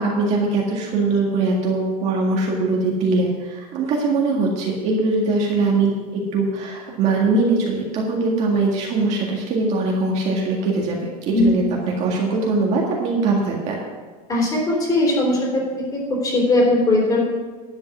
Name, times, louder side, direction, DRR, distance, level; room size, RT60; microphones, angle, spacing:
voice 1, 0.0-11.0 11.3-13.8, right 3 dB, 30° right, -2 dB, 1.8 m, -21 dB
voice 2, 14.3-15.6 15.9-17.2, left 2 dB, 20° left, -3 dB, 3.5 m, -19 dB
11.0 x 8.7 x 6.2 m, 1.4 s
supercardioid pair, 170°, 21 cm